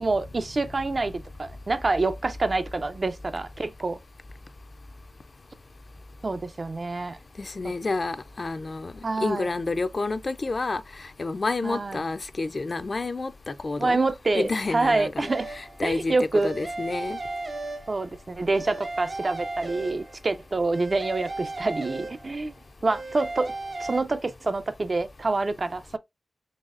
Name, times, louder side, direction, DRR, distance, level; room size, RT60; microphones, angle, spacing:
voice 1, 0.0-4.0 6.2-7.2 9.0-9.5 11.6-12.0 13.8-15.5 15.8-16.5 17.9-22.5 22.8-23.5 23.8-26.0, right 3 dB, 50° right, 0.4 m, -27 dB
voice 2, 7.4-8.9 9.2-10.8 11.2-14.0 14.3-17.2, left 3 dB, 50° left, 0.4 m, -29 dB
sound 1, 15.3-15.8 16.4-18.2 18.5-20.3 20.7-22.5 22.9-24.0, right 2 dB, 65° right, 1.2 m, -35 dB
4.0 x 3.4 x 2.4 m
wide cardioid pair, 75°, 0 cm